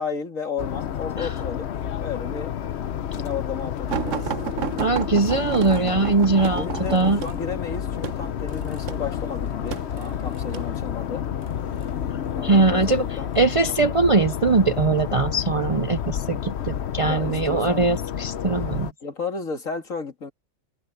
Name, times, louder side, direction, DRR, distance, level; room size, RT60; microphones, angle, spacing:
voice 1, 0.0-1.7 2.0-2.5 3.2-4.3 6.5-11.2 12.4-13.3 17.0-17.9 19.0-20.3, left 5 dB, 75° left, 2.7 m, -33 dB
sound 1, 0.6-18.9, left 9 dB, 60° left, 1.0 m, -30 dB
sound 2, 3.9-10.7 11.5-11.9 12.8-13.5 14.2-14.4 14.8-14.9, right 8 dB, 70° right, 1.2 m, -32 dB
voice 2, 4.8-7.2 12.4-18.9, right 3 dB, 40° right, 0.4 m, -21 dB
omnidirectional pair, 1.4 m